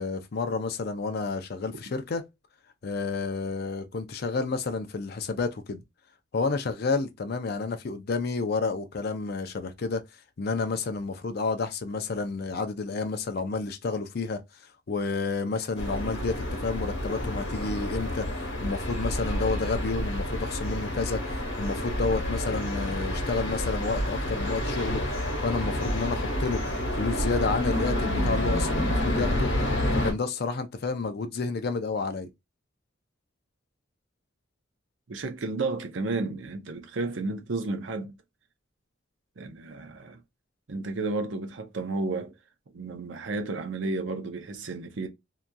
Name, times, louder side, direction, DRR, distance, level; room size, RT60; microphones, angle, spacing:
voice 1, 0.0-2.2 2.8-5.8 6.3-10.0 10.4-14.4 14.9-21.2 21.6-29.5 29.9-32.3, left 4 dB, 55° left, 0.5 m, -30 dB
sound 1, 15.8-30.1, left 1 dB, 85° left, 1.2 m, -29 dB
voice 2, 35.1-38.2 39.4-40.2 40.7-42.3 42.7-45.1, right 3 dB, 75° right, 0.6 m, -32 dB
2.8 x 2.4 x 2.2 m
head